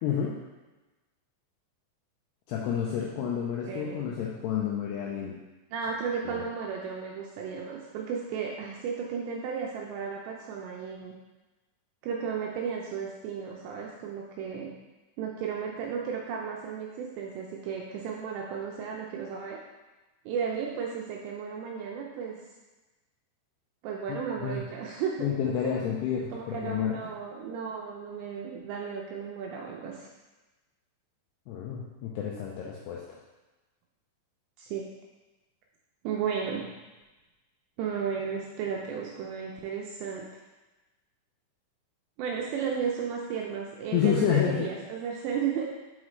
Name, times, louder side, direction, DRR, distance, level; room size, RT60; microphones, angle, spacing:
voice 1, 0.0-0.4 2.5-5.4 24.1-24.6 25.2-27.0 31.5-33.0 43.9-44.7, left 8 dB, 85° left, -3 dB, 2.4 m, -29 dB
voice 2, 3.7-4.1 5.7-11.2 12.0-14.7 15.2-19.6 20.3-22.4 23.8-25.7 26.3-30.1 34.6-34.9 36.0-36.7 37.8-40.3 42.2-45.6, right 6 dB, 80° right, -1 dB, 2.6 m, -34 dB
6.1 x 5.6 x 3.1 m, 1.1 s
omnidirectional pair, 5.4 m